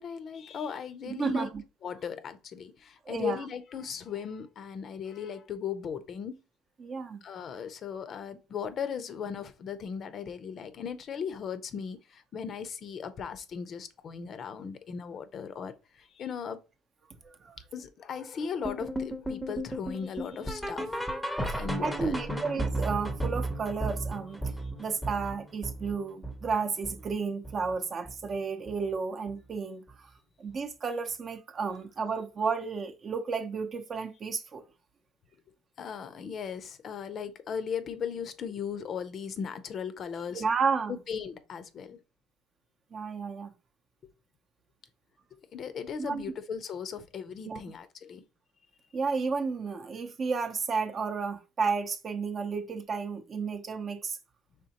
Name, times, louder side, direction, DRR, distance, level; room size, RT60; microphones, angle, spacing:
voice 1, 0.0-1.5 1.8-6.4 7.2-16.6 17.7-21.0 21.6-22.4 35.8-40.4 40.9-42.0 45.3-48.2, left 7 dB, 40° left, 0.6 m, -37 dB
voice 2, 1.1-1.6 3.1-3.5 6.8-7.2 17.2-17.6 21.5-24.4 24.8-30.1 30.4-34.6 40.3-40.9 42.9-43.5 46.0-46.2 47.4-47.6 48.9-54.2, right 5 dB, 35° right, 0.7 m, -32 dB
sound 1, 18.6-27.8 28.1-28.4 28.7-28.8 29.3-29.4 29.9-30.0, right 1 dB, ahead, 0.8 m, -35 dB
5.0 x 3.4 x 2.9 m
cardioid pair, 125°, 0 cm